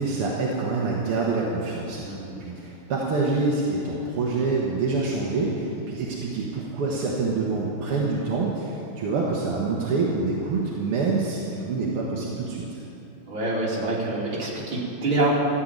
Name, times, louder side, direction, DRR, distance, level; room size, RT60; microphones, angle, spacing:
voice 1, 0.0-12.8, right 3 dB, 85° right, -4 dB, 2.3 m, -26 dB
voice 2, 2.0-2.4 13.3-15.4, right 2 dB, 65° right, -5 dB, 3.6 m, -26 dB
14.0 x 7.8 x 9.3 m, 3.0 s
omnidirectional pair, 2.4 m